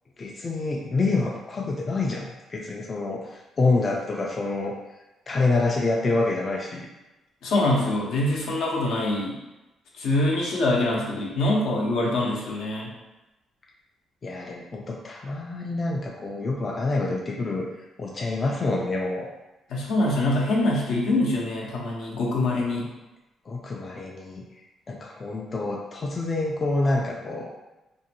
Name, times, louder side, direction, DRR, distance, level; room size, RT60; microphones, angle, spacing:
voice 1, 0.2-4.8 5.3-6.9 14.2-17.7 18.0-19.3 23.5-24.4 24.9-27.5, left 3 dB, 35° left, -1 dB, 0.3 m, -27 dB
voice 2, 7.4-9.4 10.0-12.9 19.7-22.9, left 1 dB, 80° left, -3 dB, 0.7 m, -24 dB
2.6 x 2.1 x 2.7 m, 1.0 s
cardioid pair, 90°, 0 cm